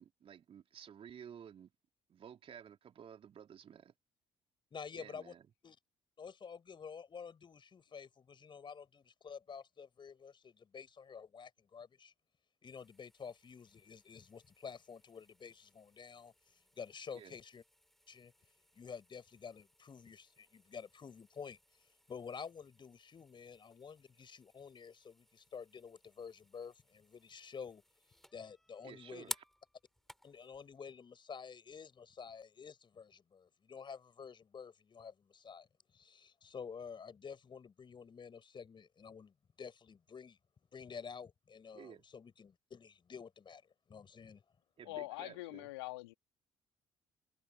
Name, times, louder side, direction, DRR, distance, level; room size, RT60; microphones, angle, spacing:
voice 1, 0.0-1.7 2.1-3.9 4.9-5.4 17.1-17.4 28.8-29.3 41.8-42.0 44.8-45.7, right 8 dB, 45° right, 3.5 m, -53 dB
voice 2, 4.7-5.3 5.6-5.8 6.2-12.1 12.6-17.6 18.1-18.3 18.7-27.8 28.3-29.3 30.2-40.4 40.7-43.6 43.9-44.4, left 6 dB, 35° left, 5.8 m, -50 dB
sound 1, 12.6-30.8, equal, ahead, 4.0 m, -55 dB
voice 3, 44.8-46.1, left 20 dB, 70° left, 2.2 m, -43 dB
figure-of-eight pair, 45°, 13 cm